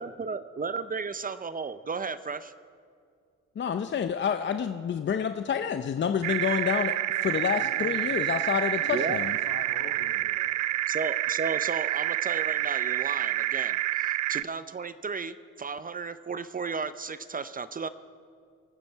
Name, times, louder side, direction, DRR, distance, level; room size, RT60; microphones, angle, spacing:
voice 1, 0.0-2.5 8.9-9.2 10.9-17.9, right 5 dB, 30° right, 14 dB, 0.6 m, -34 dB
voice 2, 3.6-6.9 7.2-9.4, left 7 dB, 40° left, 8 dB, 0.6 m, -28 dB
sound 1, 6.2-14.4, right 15 dB, 75° right, 0.5 m, -28 dB
voice 3, 7.2-8.2 8.8-10.6, left 5 dB, 70° left, 2 dB, 2.5 m, -45 dB
24.5 x 9.7 x 4.6 m, 2.2 s
cardioid pair, 90°, 30 cm